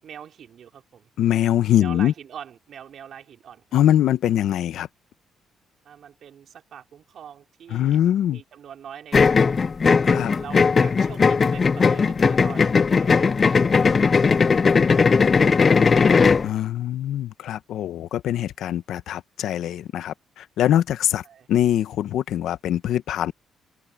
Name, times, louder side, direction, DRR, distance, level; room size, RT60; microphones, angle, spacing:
voice 1, 0.0-1.1 1.8-3.6 5.8-8.0 8.3-10.1 10.4-16.3 21.2-21.5, right 8 dB, 65° right, 4.0 m, -43 dB
voice 2, 1.2-2.1 3.7-4.9 7.7-8.4 10.1-10.3 16.4-23.3, left 11 dB, 80° left, 1.1 m, -23 dB
sound 1, 9.1-16.5, left 5 dB, 35° left, 0.3 m, -18 dB
open air
cardioid pair, 90°, 0 cm